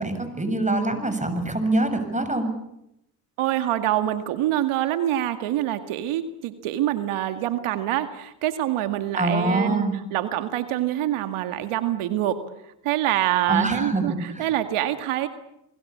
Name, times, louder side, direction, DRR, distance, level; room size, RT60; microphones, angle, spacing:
voice 1, 0.0-2.5 9.2-9.9 13.5-14.5, right 2 dB, 15° right, 8 dB, 7.3 m, -24 dB
voice 2, 3.4-12.4 12.8-15.3, right 12 dB, 85° right, 8 dB, 2.1 m, -25 dB
30.0 x 21.0 x 8.6 m, 0.82 s
cardioid pair, 85°, 49 cm